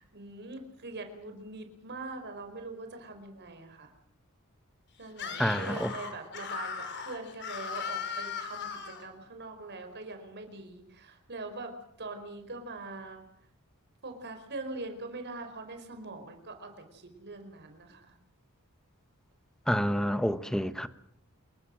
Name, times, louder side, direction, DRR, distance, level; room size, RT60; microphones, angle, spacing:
voice 1, 0.0-3.9 5.0-13.2 14.0-18.2, right 3 dB, 50° right, 4.8 m, -43 dB
Screaming, 5.1-9.1, left 6 dB, 55° left, 5.0 m, -38 dB
voice 2, 5.4-5.9 19.7-20.9, equal, 5° left, 1.1 m, -28 dB
28.0 x 21.5 x 6.4 m
head